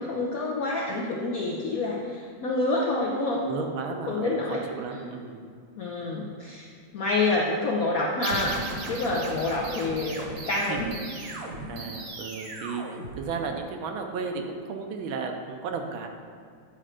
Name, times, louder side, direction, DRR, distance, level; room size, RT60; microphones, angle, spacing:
voice 1, 0.0-3.5 4.1-4.6 4.9-5.1 5.8-8.5 8.9-10.9, left 2 dB, 70° left, -3 dB, 0.8 m, -28 dB
voice 2, 3.4-5.4 10.7-11.0 11.3-16.1, right 5 dB, 75° right, 4 dB, 1.4 m, -34 dB
sound 1, 8.2-13.7, right 2 dB, 50° right, 1.4 m, -36 dB
8.8 x 4.3 x 5.0 m, 2.2 s
omnidirectional pair, 2.4 m